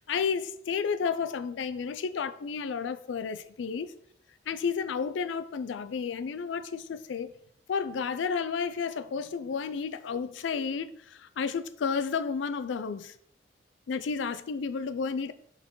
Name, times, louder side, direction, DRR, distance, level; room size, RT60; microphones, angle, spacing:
voice 1, 0.0-3.9 4.5-7.3 7.7-13.1 13.9-15.3, left 6 dB, 85° left, 0.4 m, -32 dB
5.0 x 4.4 x 4.6 m
head